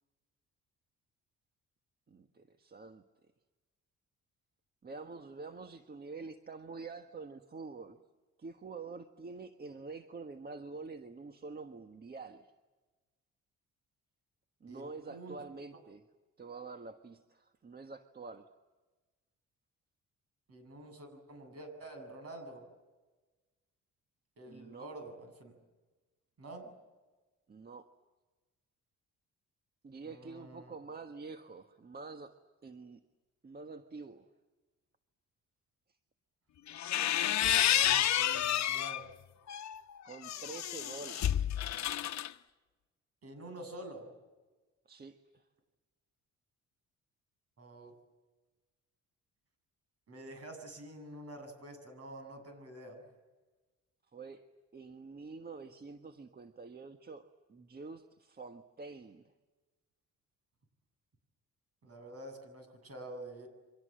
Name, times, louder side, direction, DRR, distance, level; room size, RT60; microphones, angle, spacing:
voice 1, 2.1-3.0 4.8-8.0 8.4-12.5 14.6-16.1 16.4-18.5 24.5-24.9 27.5-27.9 29.8-32.3 32.6-33.0 33.4-34.3 40.0-41.5 44.8-45.5 54.1-54.4 54.7-59.3, right 4 dB, 30° right, 7 dB, 1.5 m, -47 dB
voice 2, 14.7-15.3 20.5-22.7 24.4-25.5 26.4-26.7 30.0-30.7 37.5-39.2 43.2-44.1 47.6-48.0 50.1-53.0 61.8-63.5, right 1 dB, 50° right, 7 dB, 7.9 m, -48 dB
sound 1, 36.7-39.0 39.5-42.3, left 11 dB, 65° left, 1.1 m, -30 dB
28.5 x 25.0 x 7.7 m, 1.2 s
cardioid pair, 90°, 30 cm